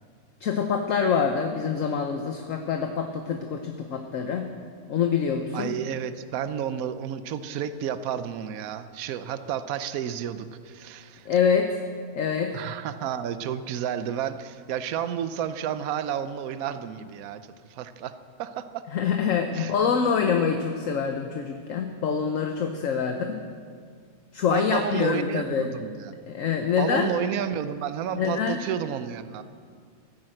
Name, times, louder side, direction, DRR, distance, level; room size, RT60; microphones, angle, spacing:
voice 1, 0.4-4.5 4.9-5.7 11.2-11.8 12.2-12.6 18.9-23.4 24.3-25.7 26.3-27.1 28.1-28.6, left 6 dB, 60° left, 5 dB, 1.2 m, -25 dB
voice 2, 5.5-11.3 12.5-18.8 19.5-19.7 23.0-23.1 24.5-26.2 26.8-29.4, right 9 dB, 70° right, 12 dB, 1.1 m, -31 dB
14.0 x 10.5 x 7.7 m, 2.1 s
omnidirectional pair, 1.6 m